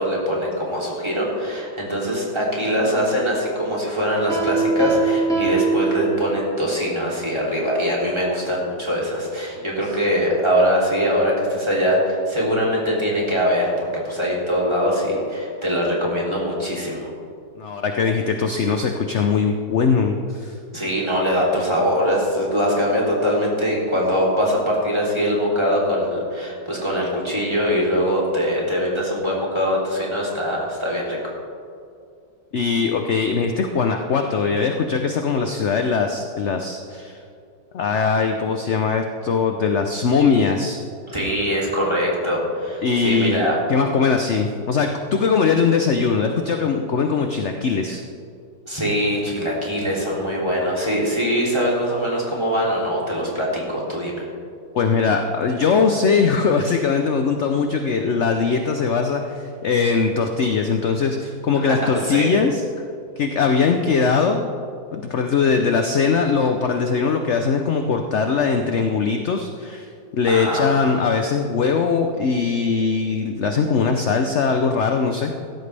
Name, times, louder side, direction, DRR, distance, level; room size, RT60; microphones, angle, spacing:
voice 1, 0.0-17.1 20.7-31.3 41.1-43.6 48.6-54.2 61.7-61.8 62.0-62.3 70.3-70.7, equal, 15° right, -4 dB, 3.1 m, -22 dB
Piano, 4.3-6.6, right 5 dB, ahead, 2.1 m, -22 dB
voice 2, 17.6-20.6 32.5-37.2 37.7-40.8 42.8-48.0 54.7-62.6 63.2-64.5 64.9-75.3, left 5 dB, 60° left, 5 dB, 0.7 m, -21 dB
16.0 x 13.5 x 3.4 m, 2.4 s
omnidirectional pair, 2.0 m